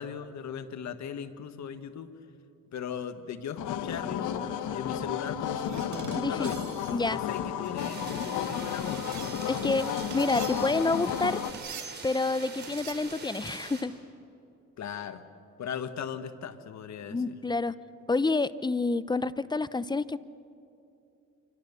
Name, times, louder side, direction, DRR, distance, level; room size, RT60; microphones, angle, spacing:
voice 1, 0.0-2.1 2.7-6.6 7.0-9.8 14.8-15.2 15.6-17.3, left 8 dB, 65° left, 10 dB, 1.6 m, -38 dB
sound 1, 3.6-11.5, left 9 dB, 80° left, 1.3 m, -33 dB
sound 2, 5.5-9.6 10.1-11.0 11.5-12.1 12.6-12.9, right 7 dB, 70° right, 2.5 m, -45 dB
voice 2, 6.1-7.2 9.5-9.9 10.1-11.4 12.0-13.9 17.1-17.7 18.1-20.2, left 3 dB, 15° left, 16 dB, 0.7 m, -28 dB
sound 3, 7.8-13.8, right 4 dB, 35° right, 5.1 m, -44 dB
27.0 x 25.0 x 6.9 m, 2.7 s
cardioid pair, 90°, 30 cm